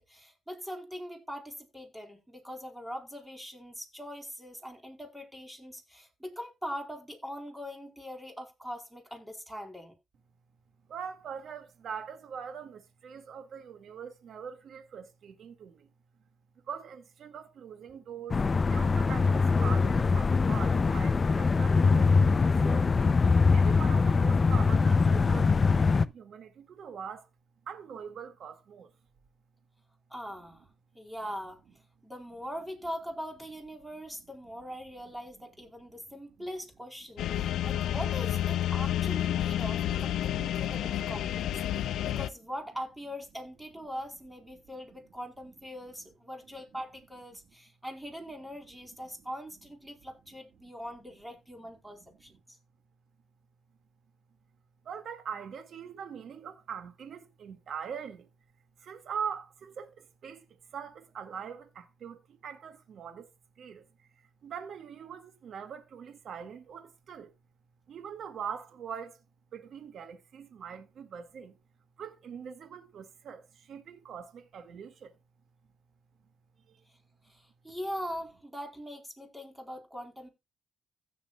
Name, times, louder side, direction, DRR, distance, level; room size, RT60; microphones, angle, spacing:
voice 1, 0.0-9.9 30.1-30.7 30.9-31.6 32.0-52.3 77.3-80.3, equal, 5° right, 4.2 m, -42 dB
voice 2, 10.9-15.9 16.6-23.1 23.5-27.3 27.7-28.9 35.9-36.0 54.8-58.3 58.8-63.3 63.6-67.3 67.9-69.2 69.5-71.6 72.0-75.1 76.7-76.8, right 7 dB, 60° right, 2.1 m, -42 dB
sound 1, 18.3-26.1, left 4 dB, 35° left, 0.6 m, -23 dB
sound 2, 37.2-42.3, left 11 dB, 75° left, 0.6 m, -30 dB
16.0 x 7.0 x 2.4 m
cardioid pair, 90°, 0 cm